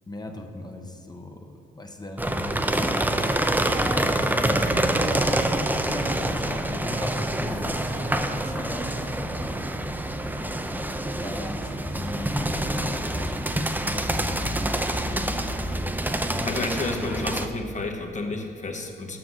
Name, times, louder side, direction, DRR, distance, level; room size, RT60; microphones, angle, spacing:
voice 1, 0.1-3.1 3.9-9.8 10.4-10.6 10.9-15.5 16.6-17.5, left 1 dB, 20° left, 3 dB, 1.0 m, -39 dB
sound 1, 2.2-17.5, right 1 dB, 10° right, 0.6 m, -26 dB
sound 2, 4.6-17.3, right 2 dB, 30° right, 1.0 m, -41 dB
voice 2, 16.4-19.2, left 3 dB, 35° left, 3 dB, 1.3 m, -31 dB
7.7 x 5.8 x 6.4 m, 2.4 s
supercardioid pair, 60°, 21 cm